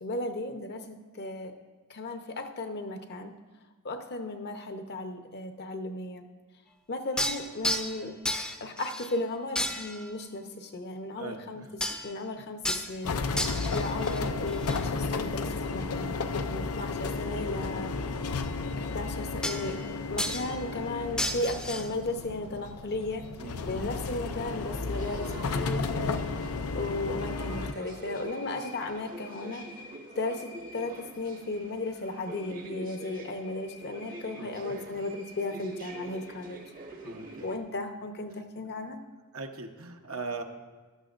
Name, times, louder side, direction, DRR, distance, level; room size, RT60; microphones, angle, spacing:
voice 1, 0.0-1.5 1.9-3.3 3.8-6.3 6.9-8.1 8.6-11.6 12.0-16.2 16.5-17.9 18.8-19.8 20.1-23.3 23.7-26.2 26.7-29.7 30.1-36.6 37.4-39.0, left 2 dB, 50° left, 6 dB, 0.8 m, -35 dB
sound 1, 7.2-9.2 9.6-10.1 11.8-12.1 12.6-12.9 13.4-14.8 19.4-19.9 20.2-20.5 21.2-21.9, equal, 5° left, 0.6 m, -32 dB
voice 2, 11.2-11.7 23.4-23.6 25.9-26.3 34.4-34.7 37.0-37.5 39.3-40.4, right 3 dB, 70° right, 4 dB, 1.0 m, -40 dB
sound 2, 13.0-27.7, left 3 dB, 75° left, 0.6 m, -33 dB
sound 3, 24.9-37.6, right 2 dB, 40° right, 1.0 m, -45 dB
14.5 x 12.0 x 2.5 m, 1.3 s
head